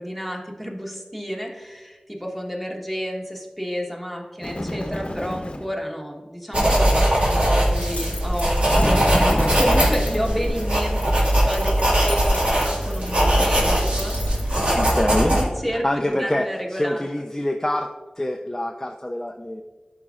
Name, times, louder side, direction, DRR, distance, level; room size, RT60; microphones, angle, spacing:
voice 1, 0.0-14.5 14.7-17.1, equal, 5° right, 0 dB, 1.3 m, -31 dB
Bird, 4.4-5.8 8.6-11.2, left 1 dB, 50° left, 0.8 m, -29 dB
sound 1, 6.5-15.4, right 1 dB, 60° right, 2.0 m, -20 dB
sound 2, 7.7-15.0, left 2 dB, 80° left, 0.8 m, -37 dB
voice 2, 14.7-15.3 15.7-17.9 18.2-19.6, left 1 dB, 20° left, 3 dB, 0.4 m, -25 dB
11.0 x 5.1 x 2.5 m, 1.3 s
wide cardioid pair, 45°, 2 cm